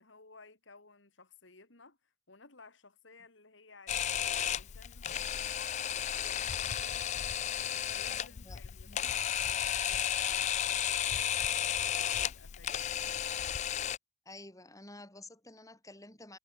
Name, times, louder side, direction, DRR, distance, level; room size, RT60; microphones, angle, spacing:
voice 1, 0.0-13.4, left 3 dB, 65° left, 2.8 m, -57 dB
Camera, 3.9-14.0, left 10 dB, 35° left, 0.3 m, -33 dB
voice 2, 8.1-9.0 14.2-16.4, left 2 dB, 15° left, 6.1 m, -51 dB
head